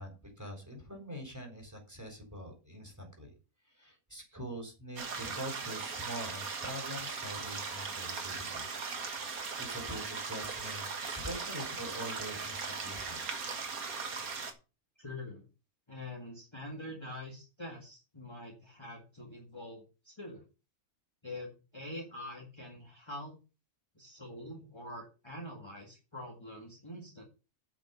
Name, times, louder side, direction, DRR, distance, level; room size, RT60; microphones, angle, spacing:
voice 1, 0.0-3.3 3.6-8.7 9.2-13.5, equal, 10° right, 3 dB, 3.7 m, -44 dB
sound 1, 5.0-14.5, right 5 dB, 75° right, 2.0 m, -39 dB
voice 2, 15.0-15.4 15.9-20.4 21.2-23.4 24.0-27.2, left 1 dB, 20° left, -1 dB, 2.0 m, -45 dB
9.2 x 5.9 x 6.9 m, 0.32 s
omnidirectional pair, 1.5 m